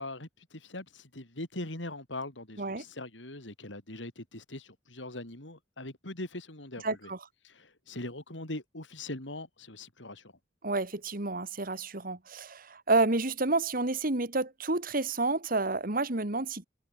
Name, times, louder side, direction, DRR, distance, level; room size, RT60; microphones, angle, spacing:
voice 1, 0.0-7.1 7.4-10.3, left 2 dB, 90° left, 5.0 m, -41 dB
voice 2, 6.8-7.2 10.6-16.7, right 3 dB, 50° right, 2.2 m, -29 dB
head